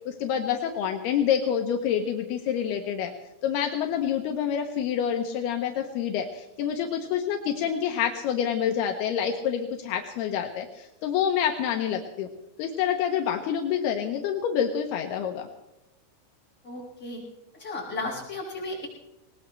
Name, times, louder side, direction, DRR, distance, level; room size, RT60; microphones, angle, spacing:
voice 1, 0.1-3.1 3.4-12.3 12.6-15.5, left 8 dB, 80° left, 4 dB, 2.3 m, -27 dB
voice 2, 16.6-17.2 17.6-18.9, left 2 dB, 15° left, -5 dB, 6.5 m, -34 dB
20.0 x 20.0 x 3.3 m, 0.93 s
omnidirectional pair, 5.9 m